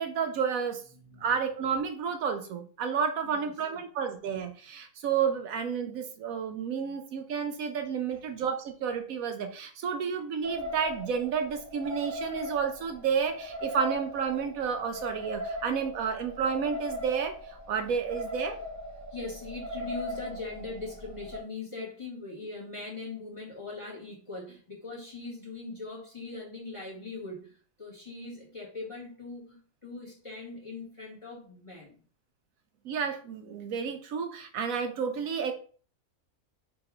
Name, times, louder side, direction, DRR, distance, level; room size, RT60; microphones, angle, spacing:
voice 1, 0.0-0.8 1.2-18.6 32.8-35.5, right 6 dB, 70° right, 6 dB, 1.0 m, -31 dB
voice 2, 0.9-1.2 3.2-3.5 8.1-8.2 19.1-32.0, left 3 dB, 20° left, -4 dB, 1.5 m, -41 dB
sound 1, 10.4-21.4, equal, 20° right, 0.4 m, -39 dB
3.5 x 3.0 x 4.8 m, 0.42 s
omnidirectional pair, 1.6 m